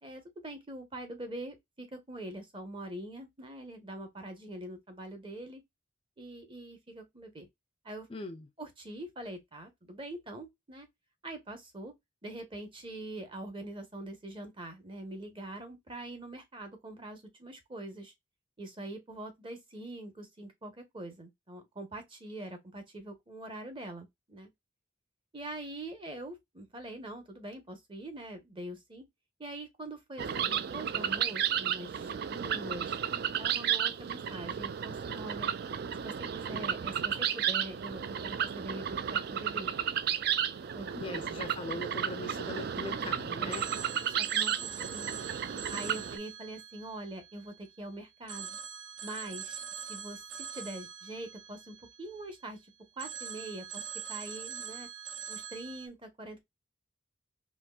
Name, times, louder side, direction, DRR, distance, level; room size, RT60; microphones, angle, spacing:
voice 1, 0.0-5.6 6.2-7.5 7.8-8.1 8.6-10.9 11.2-11.9 12.2-18.1 18.6-24.5 25.3-29.0 29.4-33.0 33.4-35.5 35.9-39.7 40.7-40.9 43.4-43.5 44.0-45.1 45.7-48.6 49.0-52.6 53.0-53.8 54.1-54.9 55.3-56.4, right 1 dB, 25° right, 0.9 m, -44 dB
voice 2, 8.1-8.5 40.9-43.7, left 2 dB, 25° left, 0.4 m, -40 dB
sound 1, 30.2-46.2, right 8 dB, 50° right, 0.3 m, -33 dB
Telephone, 43.5-47.8 48.3-52.5 53.0-55.9, right 8 dB, 70° right, 0.7 m, -43 dB
4.3 x 2.9 x 2.3 m
head